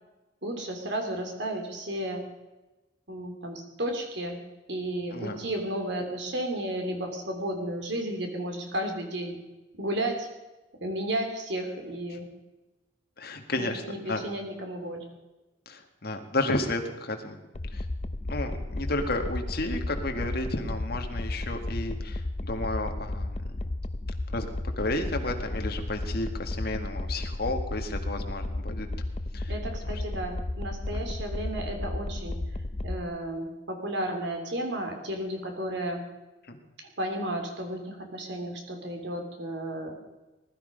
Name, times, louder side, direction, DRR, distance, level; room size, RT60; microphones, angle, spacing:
voice 1, 0.4-2.2 3.1-4.4 4.7-9.4 9.8-10.3 10.8-12.2 13.6-15.0 29.5-32.4 32.8-36.0 37.0-39.9, right 1 dB, 60° right, 3 dB, 3.2 m, -33 dB
voice 2, 13.2-14.2 15.7-17.4 17.7-17.9 18.3-23.5 24.3-24.5 24.8-28.9 29.3-29.5 29.9-30.0 30.9-31.0 36.5-36.6, left 2 dB, 50° left, 5 dB, 1.8 m, -32 dB
sound 1, 17.5-33.0, left 2 dB, 30° left, 0.6 m, -33 dB
20.0 x 12.5 x 5.2 m, 1.1 s
head